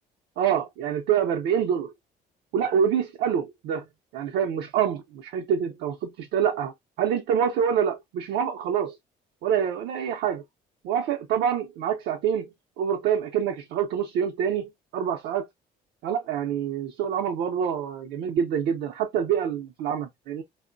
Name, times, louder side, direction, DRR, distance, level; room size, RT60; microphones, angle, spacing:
voice 1, 0.4-1.9 2.5-3.8 4.1-9.0 9.4-10.4 10.8-12.5 12.8-15.5 16.0-20.4, right 8 dB, 80° right, 0.5 m, -26 dB
3.5 x 2.0 x 2.4 m
cardioid pair, 110°, 17 cm